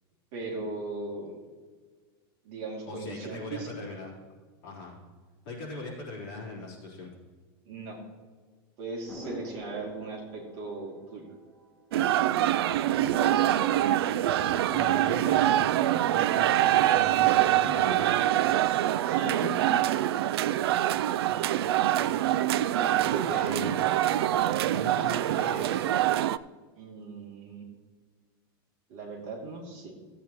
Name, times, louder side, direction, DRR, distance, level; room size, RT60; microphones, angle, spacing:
voice 1, 0.3-1.4 2.4-3.7 7.7-8.0 8.8-11.3 19.0-19.5 22.7-23.6 26.8-27.6 28.9-29.9, right 3 dB, 40° right, -2 dB, 2.7 m, -38 dB
voice 2, 2.9-4.1 4.6-5.0 5.5-7.1 14.7-15.7 16.1-18.1 23.0-23.9 24.7-25.9, left 3 dB, 45° left, -4 dB, 3.5 m, -40 dB
sound 1, 9.1-12.1 12.4-12.5 13.0-16.0 16.4-17.0, equal, 5° left, 3.4 m, -47 dB
sound 2, 11.9-26.4, right 13 dB, 85° right, 0.4 m, -25 dB
16.0 x 8.4 x 3.1 m, 1.5 s
supercardioid pair, 170°, 13 cm